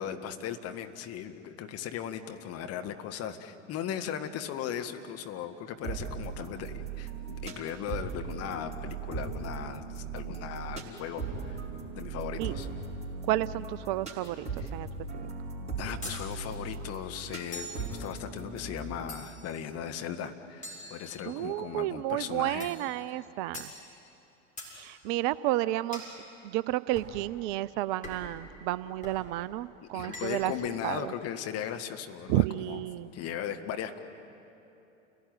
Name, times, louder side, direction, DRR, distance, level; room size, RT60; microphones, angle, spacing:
voice 1, 0.0-11.6 12.0-12.7 15.8-22.7 29.9-32.8 33.1-34.0, left 9 dB, 40° left, 7 dB, 1.7 m, -37 dB
sound 1, 5.8-19.0, right 4 dB, 15° right, 5.1 m, -38 dB
voice 2, 13.2-14.9 15.1-15.3 21.3-23.7 24.7-30.5 30.8-31.1 32.3-33.1, right 15 dB, 40° right, 17 dB, 0.5 m, -31 dB
sound 2, 16.0-16.3 17.5-17.9 19.1-19.5 20.6-21.5 22.6-22.9 23.5-23.8 24.6-24.8 25.9-26.2 26.9-27.2 28.0-28.4 29.0-29.2 30.0-30.6, left 1 dB, 20° left, 7.0 m, -43 dB
29.0 x 17.0 x 9.5 m, 2.9 s
figure-of-eight pair, 85°, 38 cm